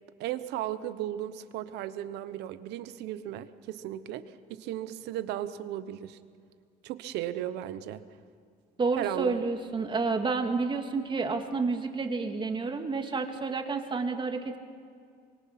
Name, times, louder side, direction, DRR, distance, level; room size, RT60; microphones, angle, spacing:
voice 1, 0.2-6.2 6.8-8.0 8.9-9.5, right 12 dB, 90° right, 13 dB, 1.0 m, -35 dB
voice 2, 8.8-14.6, right 4 dB, 30° right, 5 dB, 2.1 m, -30 dB
24.0 x 23.5 x 6.0 m, 2.2 s
cardioid pair, 110°, 17 cm